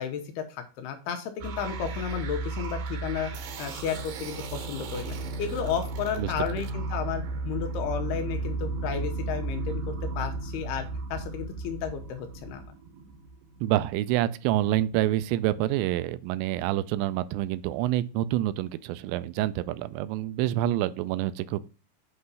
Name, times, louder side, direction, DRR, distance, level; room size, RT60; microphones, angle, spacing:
voice 1, 0.0-3.3 3.6-12.6, left 7 dB, 75° left, 2.5 m, -33 dB
sound 1, 1.4-13.7, right 3 dB, 70° right, 2.4 m, -34 dB
voice 2, 13.6-21.7, right 14 dB, 90° right, 2.8 m, -27 dB
8.0 x 3.2 x 5.4 m
omnidirectional pair, 5.1 m